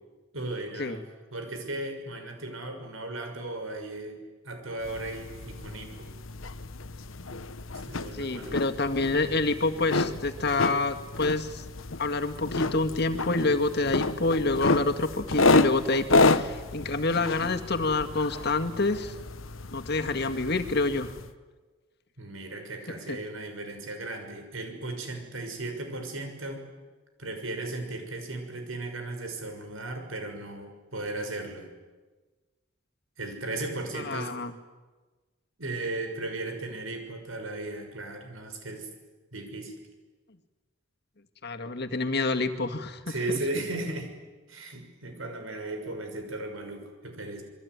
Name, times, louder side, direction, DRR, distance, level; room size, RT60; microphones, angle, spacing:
voice 1, 0.3-1.0 1.3-6.1 7.7-8.6 22.2-26.6 27.2-31.7 33.2-34.3 35.6-38.9 39.3-39.8 43.1-44.1 44.5-47.4, right 2 dB, 85° right, 6 dB, 6.2 m, -36 dB
sound 1, 4.8-21.3, left 3 dB, 85° left, 1.2 m, -30 dB
voice 2, 8.1-11.6 12.0-19.1 19.7-21.1 23.1-23.2 33.9-34.5 41.4-43.4, left 3 dB, 55° left, 6 dB, 2.0 m, -27 dB
27.0 x 22.5 x 9.6 m, 1.3 s
head